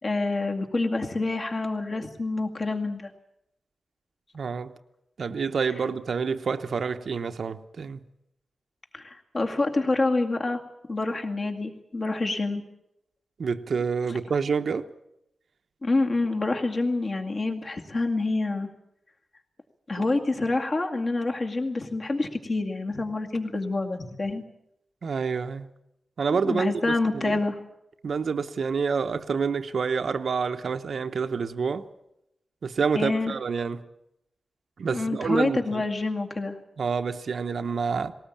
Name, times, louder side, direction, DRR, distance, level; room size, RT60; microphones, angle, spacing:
voice 1, 0.0-3.1 8.9-10.6 10.9-12.6 15.8-18.7 19.9-24.4 26.3-27.6 32.9-33.3 34.9-36.6, left 2 dB, 40° left, 2.2 m, -27 dB
voice 2, 4.3-4.7 5.2-8.0 13.4-14.8 20.0-20.1 25.0-25.7 26.2-27.4 28.0-31.9 32.6-33.8 34.8-35.9 36.8-38.1, right 5 dB, 65° right, 0.9 m, -28 dB
19.5 x 18.5 x 8.6 m
wide cardioid pair, 140°, 0 cm